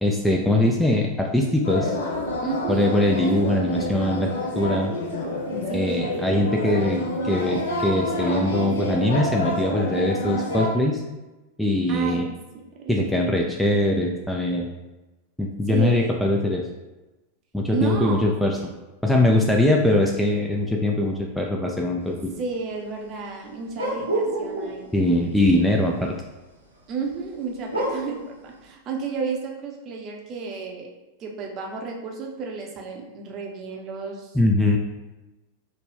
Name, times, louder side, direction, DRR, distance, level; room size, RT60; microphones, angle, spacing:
voice 1, 0.0-2.0 2.7-4.3 4.6-4.9 5.7-11.0 11.6-12.3 12.9-14.7 15.4-16.6 17.5-18.7 19.0-22.3 24.9-26.1 34.3-34.8, left 1 dB, 5° left, 0 dB, 0.3 m, -22 dB
sound 1, 1.6-10.7, left 1 dB, 60° left, 0.6 m, -28 dB
voice 2, 2.4-2.9 5.7-6.3 11.9-12.3 12.8-13.1 15.7-16.3 17.7-18.3 22.4-24.9 26.9-30.9 31.2-34.4, right 4 dB, 35° right, 0 dB, 0.6 m, -32 dB
sound 2, 23.7-24.9 27.7-28.2, right 1 dB, 85° right, 0.6 m, -27 dB
4.0 x 2.2 x 3.3 m, 1.1 s
figure-of-eight pair, 90°, 0 cm